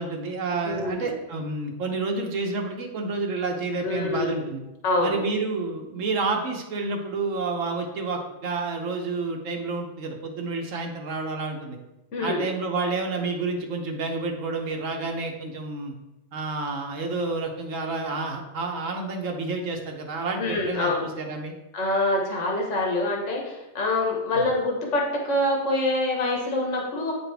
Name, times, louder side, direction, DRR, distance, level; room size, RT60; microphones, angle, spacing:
voice 1, 0.0-4.6 5.0-11.8 12.2-15.9 16.3-21.5, right 3 dB, 75° right, 2 dB, 1.2 m, -29 dB
voice 2, 0.6-1.1 3.8-4.3 4.8-5.2 12.1-12.4 20.4-21.1 21.7-27.1, left 2 dB, 65° left, 0 dB, 1.5 m, -25 dB
8.9 x 4.1 x 3.4 m, 0.98 s
omnidirectional pair, 1.4 m